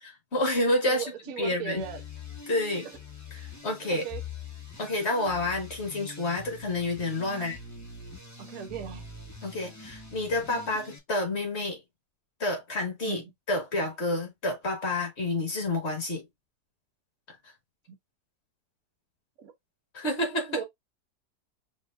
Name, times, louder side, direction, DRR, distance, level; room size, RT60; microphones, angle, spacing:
voice 1, 0.0-1.1 1.4-1.8 2.5-2.9 3.4-4.1 4.8-7.6 9.4-11.8 12.4-13.2 13.5-16.2 19.9-20.6, left 2 dB, 40° left, 1.8 m, -29 dB
voice 2, 0.8-2.0 2.8-3.0 3.3-3.5 3.9-4.2 7.3-7.5 8.4-9.0 13.0-13.3 17.9-18.0 19.4-19.5 20.5-20.6, right 8 dB, 55° right, 1.2 m, -38 dB
sound 1, 1.8-11.0, left 4 dB, 15° left, 0.8 m, -44 dB
5.1 x 3.1 x 2.5 m
omnidirectional pair, 1.9 m